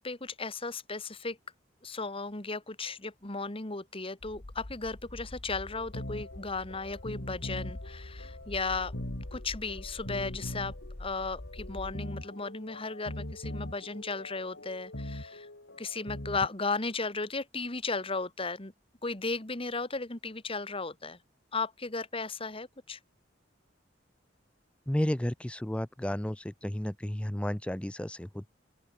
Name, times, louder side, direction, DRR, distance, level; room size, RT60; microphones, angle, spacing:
voice 1, 0.0-1.4 1.8-8.9 9.3-10.7 11.0-15.5 15.8-18.7 19.0-21.2 21.5-23.0, left 3 dB, 30° left, 2.0 m, -35 dB
sound 1, 4.2-11.9, left 1 dB, 45° left, 1.2 m, -45 dB
sound 2, 5.7-16.5, left 1 dB, 65° left, 3.2 m, -42 dB
voice 2, 24.9-28.5, left 1 dB, 5° left, 0.5 m, -32 dB
open air
head